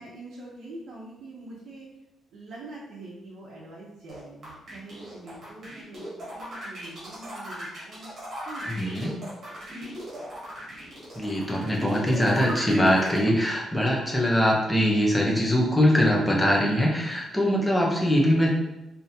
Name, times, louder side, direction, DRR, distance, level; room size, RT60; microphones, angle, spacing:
voice 1, 0.0-1.9 2.3-6.0 6.3-8.1 8.5-8.8 9.7-9.9 17.5-17.7, right 2 dB, 70° right, -7 dB, 0.6 m, -44 dB
sound 1, 4.1-13.2, equal, 35° right, 1.2 m, -38 dB
voice 2, 8.7-9.2 11.2-18.5, equal, 5° left, -2 dB, 0.6 m, -22 dB
3.6 x 2.7 x 2.7 m, 0.94 s
cardioid pair, 165°, 0 cm